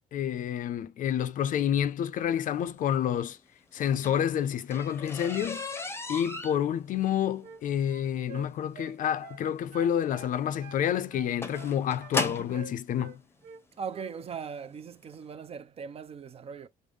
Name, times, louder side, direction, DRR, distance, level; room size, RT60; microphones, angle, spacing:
voice 1, 0.1-3.4 3.7-5.6 6.1-13.2, left 9 dB, 50° left, 0.4 m, -29 dB
sound 1, 3.8-12.6 13.5-13.6 14.2-14.4 14.7-14.8 15.1-15.2, left 3 dB, 15° left, 0.7 m, -37 dB
sound 2, 6.9-7.6 7.9-9.4 9.7-10.8 11.1-12.2 12.5-13.6 13.9-14.1, right 7 dB, 75° right, 0.8 m, -48 dB
voice 2, 13.8-16.7, right 6 dB, 35° right, 0.4 m, -39 dB
5.3 x 2.0 x 3.2 m
cardioid pair, 110°, 17 cm